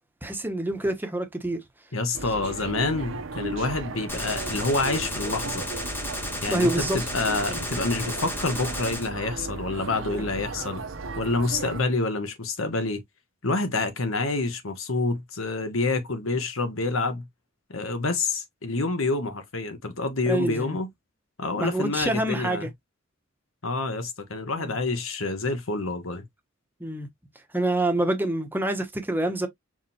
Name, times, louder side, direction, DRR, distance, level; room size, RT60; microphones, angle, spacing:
voice 1, 0.2-1.6 6.5-7.0 10.1-10.2 20.3-20.8 21.6-22.7 24.6-24.7 26.8-27.1 27.5-29.5, right 1 dB, 10° right, 1.1 m, -26 dB
voice 2, 1.9-5.7 6.4-10.8 11.2-13.0 13.4-17.2 17.7-20.9 21.4-22.7 23.6-26.2, left 3 dB, 80° left, 1.3 m, -27 dB
sound 1, 2.1-11.8, right 3 dB, 70° right, 0.9 m, -36 dB
Gunshot gunfire, 4.1-9.1, left 1 dB, 10° left, 1.3 m, -33 dB
4.9 x 3.7 x 2.9 m
head